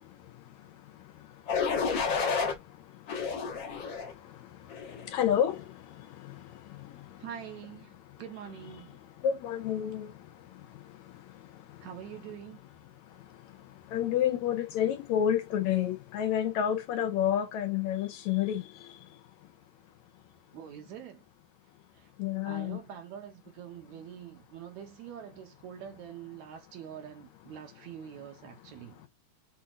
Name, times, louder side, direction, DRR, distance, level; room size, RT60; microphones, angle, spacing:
sound 1, 1.5-2.5 3.1-4.1 4.7-5.1, left 5 dB, 55° left, 1.4 m, -30 dB
voice 1, 5.1-5.6 9.2-10.1 13.9-18.6 22.2-22.8, left 10 dB, 75° left, 1.9 m, -28 dB
voice 2, 7.2-9.0 11.8-12.6 20.5-21.2 22.0-22.1 22.5-29.1, right 9 dB, 75° right, 2.2 m, -45 dB
6.1 x 2.8 x 2.4 m
omnidirectional pair, 3.5 m